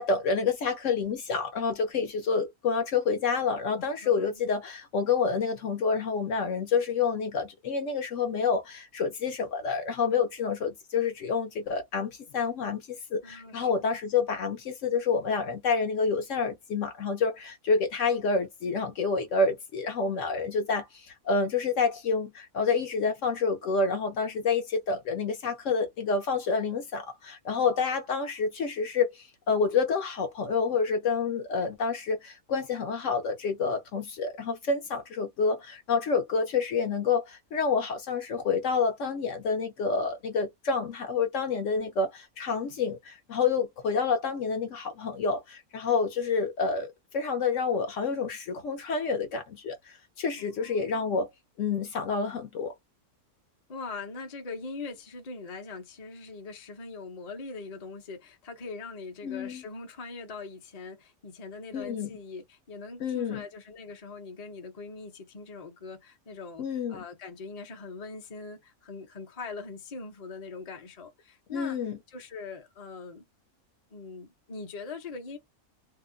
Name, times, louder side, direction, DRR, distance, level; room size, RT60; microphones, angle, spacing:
voice 1, 0.0-51.3 51.6-52.7 59.2-59.6 61.7-62.1 63.0-63.4 66.6-67.0 71.5-72.0, left 5 dB, 65° left, 0.9 m, -28 dB
voice 2, 4.0-4.4 13.2-13.8 50.3-51.2 53.7-71.8 72.1-73.2 73.9-75.4, left 4 dB, 35° left, 0.7 m, -42 dB
2.7 x 2.1 x 3.6 m
omnidirectional pair, 1.5 m